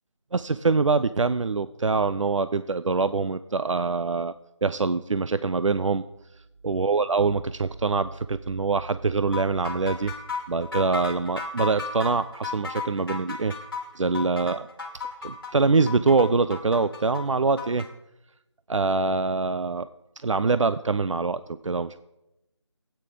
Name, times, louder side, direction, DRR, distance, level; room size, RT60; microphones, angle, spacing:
voice 1, 0.3-4.3 4.6-6.0 6.6-10.1 10.5-13.5 14.0-14.6 15.2-17.9 18.7-19.9 20.2-22.0, right 4 dB, 90° right, 13 dB, 0.5 m, -24 dB
sound 1, 9.3-17.9, left 5 dB, 45° left, 2.0 m, -34 dB
14.0 x 8.9 x 3.8 m, 0.92 s
figure-of-eight pair, 170°, 16 cm